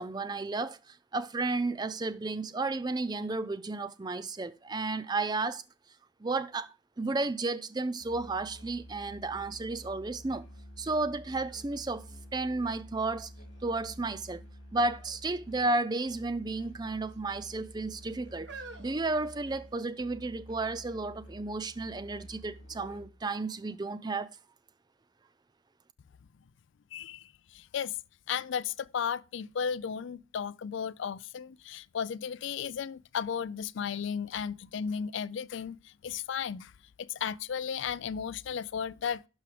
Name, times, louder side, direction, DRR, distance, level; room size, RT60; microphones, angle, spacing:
voice 1, 0.0-5.6 6.2-10.4 10.8-12.1 12.3-13.3 13.6-14.4 14.7-18.5 18.8-24.4, right 3 dB, 20° right, 0.4 m, -33 dB
Musical instrument, 8.0-23.3, equal, 90° left, 2.7 m, -50 dB
sound 1, 10.9-11.0 11.4-13.0 13.5-14.0 14.9-15.2 15.5-15.7 16.6-17.2 17.9-20.0 20.7-20.8, right 4 dB, 60° right, 1.5 m, -51 dB
voice 2, 26.9-28.0 28.3-36.7 37.0-39.2, left 7 dB, 65° left, 0.4 m, -34 dB
12.0 x 4.8 x 5.0 m
head